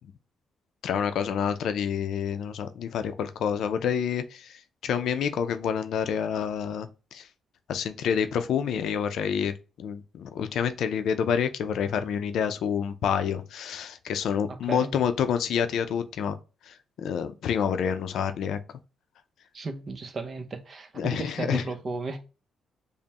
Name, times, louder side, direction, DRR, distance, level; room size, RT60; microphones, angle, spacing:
voice 1, 0.8-7.3 7.7-16.3 16.7-18.6 21.0-21.6, left 7 dB, 70° left, 0.5 m, -28 dB
voice 2, 19.5-22.2, right 3 dB, 40° right, 0.7 m, -34 dB
5.2 x 2.1 x 2.9 m
cardioid pair, 90°, 0 cm